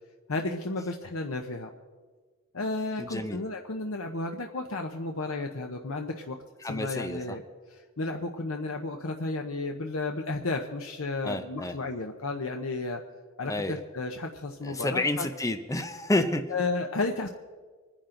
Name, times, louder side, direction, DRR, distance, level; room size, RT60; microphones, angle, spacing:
voice 1, 0.3-1.7 2.5-6.4 6.6-7.4 7.7-13.0 13.4-15.3 16.5-17.3, left 3 dB, 80° left, 4 dB, 0.9 m, -33 dB
voice 2, 3.0-3.4 6.6-7.4 11.2-11.8 13.4-13.8 14.6-16.4, left 2 dB, 15° left, 7 dB, 0.7 m, -30 dB
25.5 x 10.5 x 3.9 m, 1.4 s
head